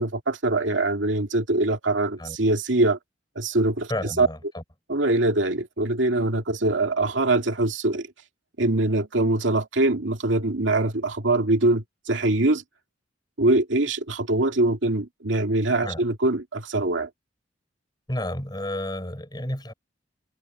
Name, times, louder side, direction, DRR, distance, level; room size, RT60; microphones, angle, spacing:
voice 1, 0.0-3.0 3.4-3.9 4.2-4.3 4.9-8.1 8.6-12.6 13.4-17.1, right 2 dB, 85° right, 2.2 m, -23 dB
voice 2, 3.9-4.6 15.8-16.0 18.1-19.7, left 1 dB, 20° left, 5.5 m, -31 dB
head